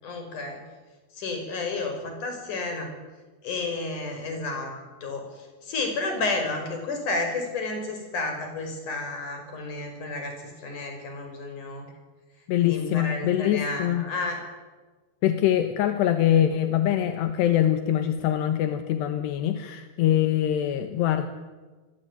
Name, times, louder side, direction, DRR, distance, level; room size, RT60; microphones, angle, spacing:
voice 1, 0.0-0.6 1.2-2.9 3.4-4.7 5.0-11.9 12.6-14.4, left 3 dB, 45° left, 5 dB, 6.9 m, -31 dB
voice 2, 12.5-14.1 15.2-21.3, left 11 dB, 80° left, 8 dB, 3.4 m, -23 dB
27.5 x 21.5 x 9.4 m, 1.3 s
omnidirectional pair, 4.8 m